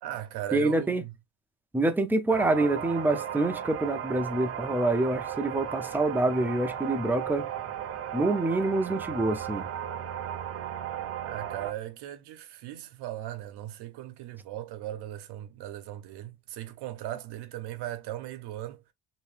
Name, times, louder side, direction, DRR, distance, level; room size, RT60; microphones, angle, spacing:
voice 1, 0.0-1.1 11.2-18.8, right 13 dB, 90° right, 0.9 m, -38 dB
voice 2, 0.5-1.0 1.7-7.5 8.1-9.7, right 2 dB, 5° right, 0.5 m, -26 dB
sound 1, 2.3-11.7, right 9 dB, 40° right, 0.7 m, -35 dB
3.0 x 2.8 x 3.2 m
cardioid pair, 130°, 39 cm